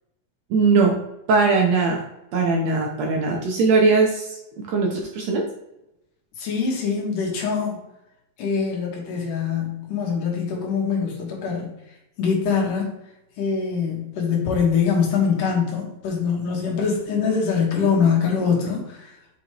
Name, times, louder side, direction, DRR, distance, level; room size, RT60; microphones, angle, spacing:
voice 1, 0.5-1.0 1.3-2.0 2.3-4.4 4.7-5.5, right 4 dB, 70° right, 1 dB, 1.7 m, -20 dB
voice 2, 6.4-7.8 8.4-11.7 12.2-12.9 13.4-19.1, left 6 dB, 80° left, -1 dB, 3.1 m, -23 dB
7.1 x 4.8 x 3.0 m, 0.87 s
omnidirectional pair, 3.8 m